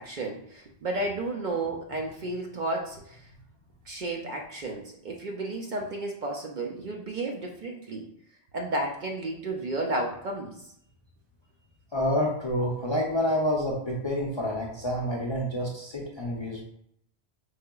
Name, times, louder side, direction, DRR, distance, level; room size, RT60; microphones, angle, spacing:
voice 1, 0.0-3.2 3.9-8.1 8.5-10.6, right 2 dB, 60° right, 1 dB, 0.6 m, -32 dB
voice 2, 11.9-16.6, equal, 40° left, -3 dB, 0.4 m, -28 dB
4.7 x 2.8 x 2.2 m, 0.71 s
omnidirectional pair, 1.1 m